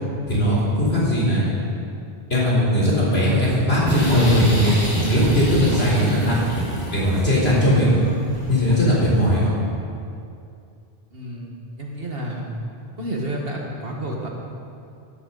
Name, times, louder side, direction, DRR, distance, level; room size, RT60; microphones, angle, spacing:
voice 1, 0.3-1.5 2.3-4.7 5.1-6.4 6.9-7.9 8.5-9.5, equal, 80° left, -6 dB, 4.5 m, -19 dB
Caçadors de sons - Mira mira Miró, 3.9-9.0, equal, 10° left, 4.1 m, -27 dB
voice 2, 11.1-12.5 13.0-14.3, right 1 dB, 65° right, -1 dB, 2.0 m, -30 dB
16.5 x 12.0 x 4.1 m, 2.5 s
omnidirectional pair, 1.0 m